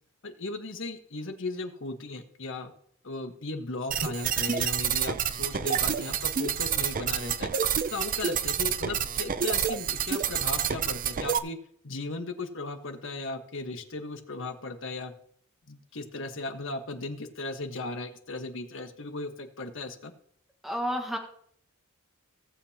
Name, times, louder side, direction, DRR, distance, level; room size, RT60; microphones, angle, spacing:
voice 1, 0.2-2.7 3.0-7.5 7.9-11.6 11.8-15.1 15.7-20.1, left 2 dB, 65° left, 6 dB, 1.3 m, -37 dB
sound 1, 3.9-11.4, right 8 dB, 40° right, 0.5 m, -28 dB
voice 2, 20.6-21.2, equal, ahead, 2 dB, 1.5 m, -30 dB
17.5 x 7.7 x 2.9 m, 0.64 s
head